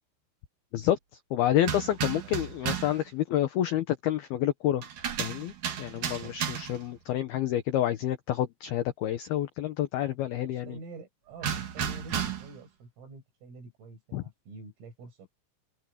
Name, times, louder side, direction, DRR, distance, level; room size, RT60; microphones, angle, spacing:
voice 1, 1.3-4.8 5.2-5.5 5.8-10.8 14.1-14.2, left 12 dB, 80° left, 2.2 m, -28 dB
sound 1, 1.6-3.0 4.8-6.9 11.4-12.6, right 8 dB, 50° right, 3.0 m, -33 dB
voice 2, 6.0-6.4 10.7-15.3, right 3 dB, 75° right, 10.5 m, -47 dB
open air
omnidirectional pair, 5.9 m